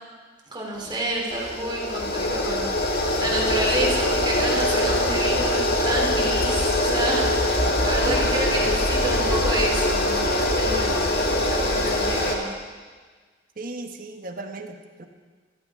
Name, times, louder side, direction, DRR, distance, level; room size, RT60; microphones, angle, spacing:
voice 1, 0.5-12.5, right 1 dB, 25° right, -2 dB, 3.3 m, -29 dB
sound 1, 0.7-12.3, left 1 dB, 50° left, 2.1 m, -23 dB
voice 2, 8.0-8.4 13.6-15.1, right 2 dB, 45° right, 5 dB, 1.3 m, -35 dB
24.0 x 15.0 x 3.7 m, 1.5 s
head